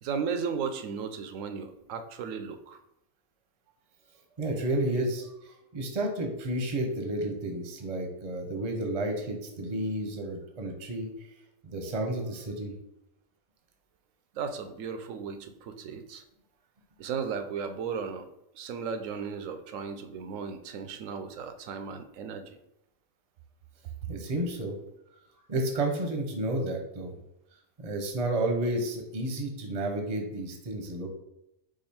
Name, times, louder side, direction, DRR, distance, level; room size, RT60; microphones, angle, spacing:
voice 1, 0.0-2.8 14.3-16.2 17.0-18.3 18.5-22.6, right 6 dB, 80° right, 8 dB, 1.0 m, -35 dB
voice 2, 4.4-11.1 11.6-12.7 24.1-24.8 25.5-27.1 27.8-31.1, right 1 dB, 35° right, 3 dB, 0.7 m, -31 dB
4.9 x 2.5 x 4.2 m, 0.83 s
omnidirectional pair, 1.3 m